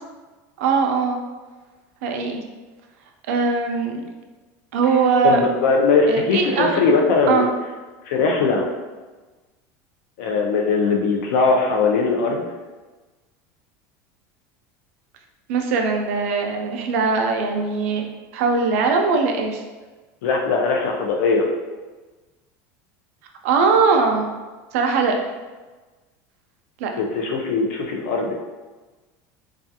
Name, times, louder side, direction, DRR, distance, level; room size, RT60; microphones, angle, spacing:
voice 1, 0.6-1.2 2.0-2.4 3.3-4.0 4.7-5.4 6.1-6.8 7.3-7.5 15.5-18.0 18.3-19.6 23.4-24.3 24.7-25.3 26.8-26.9, right 4 dB, 80° right, 3 dB, 0.4 m, -20 dB
voice 2, 5.2-7.4 8.1-8.7 10.2-12.4 20.2-21.5 27.0-28.3, left 4 dB, 85° left, 1 dB, 0.5 m, -20 dB
2.4 x 2.3 x 2.7 m, 1.3 s
cardioid pair, 165°, 8 cm